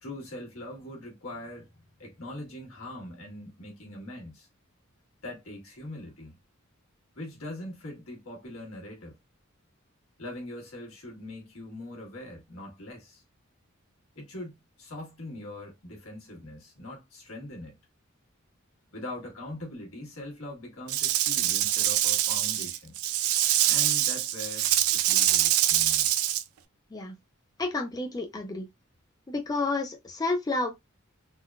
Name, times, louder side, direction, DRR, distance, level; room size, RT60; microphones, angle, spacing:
voice 1, 0.0-4.5 5.2-6.4 7.1-9.2 10.2-13.2 14.1-17.8 18.9-23.0 23.7-26.1, left 1 dB, 75° left, 1.4 m, -42 dB
Rattle / Rattle (instrument), 20.9-26.4, right 12 dB, 90° right, 0.4 m, -24 dB
voice 2, 27.6-28.7 29.3-30.7, left 3 dB, 20° left, 0.3 m, -30 dB
3.7 x 2.2 x 2.2 m
head